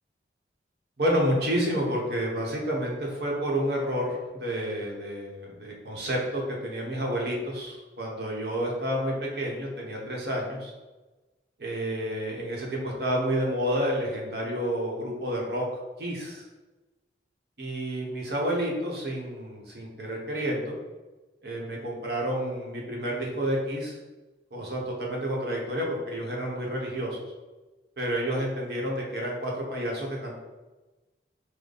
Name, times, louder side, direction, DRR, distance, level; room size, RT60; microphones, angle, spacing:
voice 1, 1.0-10.7 11.6-15.6 16.0-16.4 17.6-20.8 21.4-24.0 24.5-27.2 28.0-30.3, equal, 65° right, -2 dB, 1.0 m, -30 dB
5.1 x 2.2 x 4.0 m, 1.2 s
head